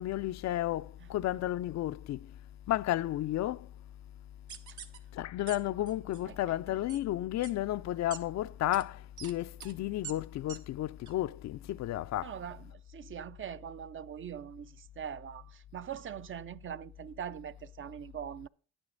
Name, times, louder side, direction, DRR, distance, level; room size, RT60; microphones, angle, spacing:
voice 1, 0.0-2.2 2.7-3.7 5.1-12.3, left 14 dB, 65° left, 0.4 m, -32 dB
sound 1, 4.5-5.0 5.5-5.6 5.9-6.2 6.9-7.0 7.4-7.5 8.1-8.2 8.7-8.8 9.2-9.3 9.6-9.7 10.0-10.1 10.5-10.6 11.1-11.2, right 9 dB, 75° right, 1.3 m, -44 dB
voice 2, 6.3-6.8 12.2-18.5, right 9 dB, 45° right, 0.5 m, -42 dB
10.5 x 9.8 x 3.9 m
cardioid pair, 90°, 30 cm